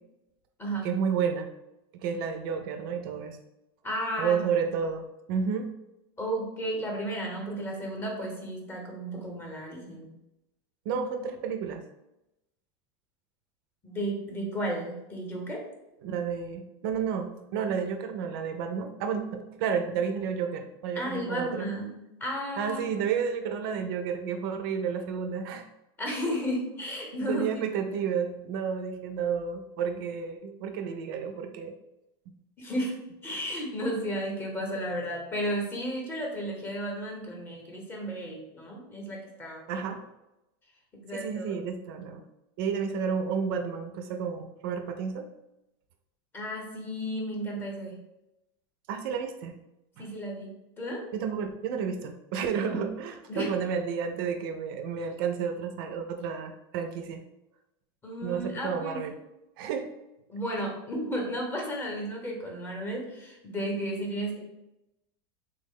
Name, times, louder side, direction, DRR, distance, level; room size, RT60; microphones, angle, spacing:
voice 1, 0.8-1.5 1.9-3.4 4.2-5.7 10.9-11.8 16.0-21.7 22.6-25.7 27.2-31.7 39.7-40.0 41.1-42.2 42.6-45.3 48.9-49.6 50.0-50.1 51.1-57.2 58.2-59.1 59.6-59.9, right 6 dB, 60° right, 6 dB, 0.4 m, -31 dB
voice 2, 3.8-4.5 6.2-10.1 13.8-15.6 20.9-21.9 22.2-22.9 26.0-27.6 32.6-32.9 33.2-39.9 41.0-41.6 46.3-48.0 50.0-51.0 52.6-52.8 53.3-53.5 58.0-59.0 60.3-64.4, equal, 15° left, -1 dB, 0.7 m, -33 dB
3.4 x 2.0 x 3.6 m, 0.91 s
supercardioid pair, 155°, 13 cm